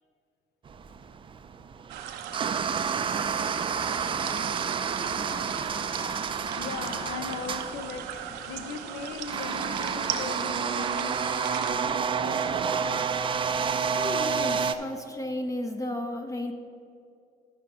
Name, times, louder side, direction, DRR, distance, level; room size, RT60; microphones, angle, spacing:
sound 1, 0.7-14.8, right 6 dB, 30° right, 0.4 m, -30 dB
sound 2, 1.9-11.7, right 9 dB, 85° right, 0.7 m, -39 dB
voice 1, 5.0-5.6 6.6-11.6, left 5 dB, 75° left, 7 dB, 0.8 m, -39 dB
voice 2, 14.0-16.5, left 1 dB, 20° left, 5 dB, 0.7 m, -33 dB
11.0 x 5.7 x 4.9 m, 2.5 s
cardioid pair, 110°, 17 cm